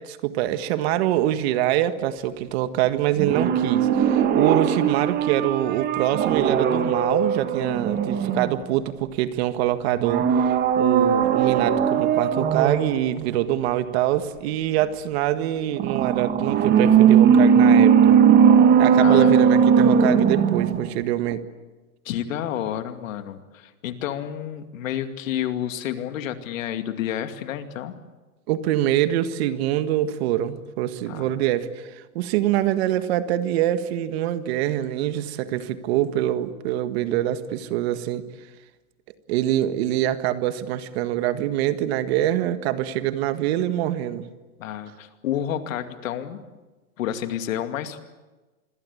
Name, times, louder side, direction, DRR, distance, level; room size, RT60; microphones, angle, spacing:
voice 1, 0.0-18.2 18.8-21.4 28.5-38.3 39.3-44.3, right 12 dB, 45° right, 11 dB, 1.7 m, -24 dB
sound 1, 3.2-8.9 10.0-13.0 15.8-21.0 21.3-21.4, right 7 dB, 25° right, 1.7 m, -18 dB
voice 2, 19.0-19.4 22.0-27.9 31.1-31.4 44.6-46.4 47.0-48.0, left 10 dB, 65° left, 8 dB, 2.5 m, -30 dB
27.0 x 22.0 x 8.5 m, 1.2 s
hypercardioid pair, 145°, 43 cm